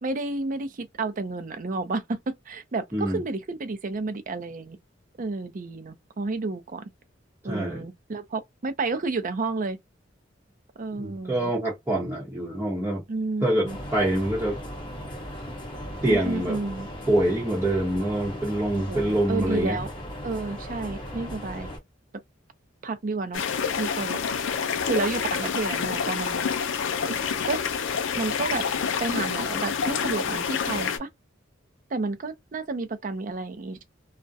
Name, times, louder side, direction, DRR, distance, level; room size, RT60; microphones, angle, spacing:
voice 1, 0.0-4.8 5.2-6.8 7.4-9.8 10.8-11.5 13.1-13.8 16.1-16.9 18.7-19.9 20.2-21.7 22.8-23.4 23.8-24.2 24.8-26.5 27.0-27.2 27.5-27.6 28.1-28.7 29.0-31.1 31.9-33.8, right 3 dB, 45° right, 0.5 m, -31 dB
voice 2, 2.9-3.2 7.5-7.8 11.0-13.0 13.4-14.6 16.0-16.6 17.1-19.8, right 1 dB, 10° right, 0.9 m, -25 dB
sound 1, 13.7-21.8, equal, 25° left, 1.1 m, -37 dB
sound 2, 23.3-31.0, left 6 dB, 75° left, 0.4 m, -28 dB
2.3 x 2.1 x 2.7 m
head